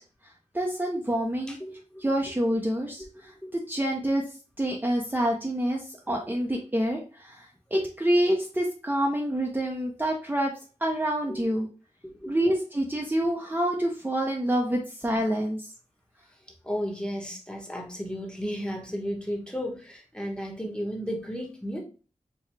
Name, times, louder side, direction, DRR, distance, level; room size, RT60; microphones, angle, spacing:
voice 1, 0.5-1.6 2.0-4.2 4.6-10.5 10.8-11.7 12.3-15.7, right 1 dB, 15° right, -1 dB, 0.6 m, -27 dB
voice 2, 1.5-2.0 3.0-3.1 3.4-3.5 11.3-11.5 12.0-12.5 16.3-16.4 16.6-21.8, equal, 5° left, 0 dB, 1.0 m, -34 dB
4.6 x 2.2 x 3.3 m, 0.37 s
wide cardioid pair, 80°, 13 cm